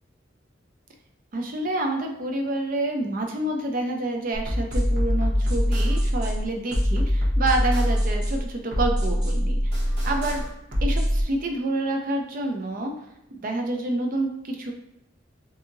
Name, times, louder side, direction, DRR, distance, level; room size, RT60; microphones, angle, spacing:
voice 1, 1.3-9.7 10.0-10.4 10.8-12.9 13.3-14.7, right 2 dB, 45° right, 3 dB, 0.4 m, -28 dB
sound 1, 4.3-11.2, equal, 60° right, 0.9 m, -23 dB
2.7 x 2.6 x 2.5 m, 0.82 s
head